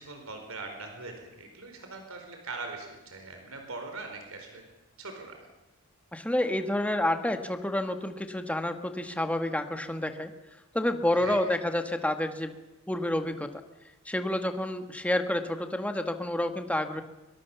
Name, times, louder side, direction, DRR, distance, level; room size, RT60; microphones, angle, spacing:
voice 1, 0.0-4.6 5.0-5.5 11.1-11.4, right 3 dB, 65° right, 4 dB, 4.6 m, -41 dB
voice 2, 6.1-10.3 10.7-12.5 12.9-13.5 14.0-17.0, left 1 dB, 5° left, 7 dB, 1.7 m, -29 dB
23.5 x 23.0 x 7.1 m, 1.0 s
head